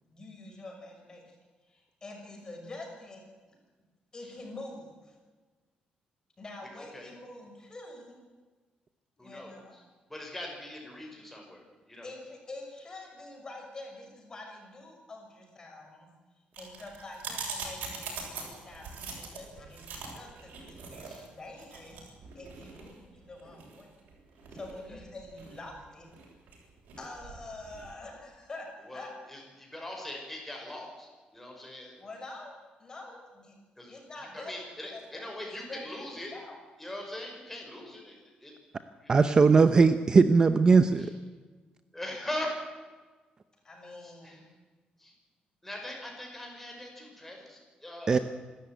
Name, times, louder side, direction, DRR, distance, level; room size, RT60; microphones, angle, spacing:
voice 1, 0.0-1.4 1.7-3.2 4.1-5.1 6.4-8.2 9.2-9.8 12.0-16.1 16.6-23.9 24.5-26.1 27.0-28.7 28.9-29.1 29.3-29.4 32.0-32.5 32.8-33.6 33.9-34.6 34.9-35.3 35.7-35.9 36.3-36.6 43.6-44.4, left 2 dB, 25° left, 2 dB, 6.1 m, -46 dB
voice 2, 6.7-7.1 9.2-9.6 10.1-12.1 21.0-21.2 24.9-25.0 28.9-32.0 33.8-34.0 34.5-36.3 36.8-38.5 39.0-39.1 41.0-41.1 41.9-42.5 44.0-44.4 45.0-45.1 45.6-48.2, left 1 dB, 5° left, 0 dB, 5.8 m, -41 dB
sound 1, 16.5-27.9, right 5 dB, 80° right, 7.5 m, -43 dB
voice 3, 39.1-41.1 48.1-48.2, right 4 dB, 25° right, 10 dB, 0.8 m, -19 dB
26.5 x 13.5 x 9.2 m, 1.3 s
cardioid pair, 150°, 3 cm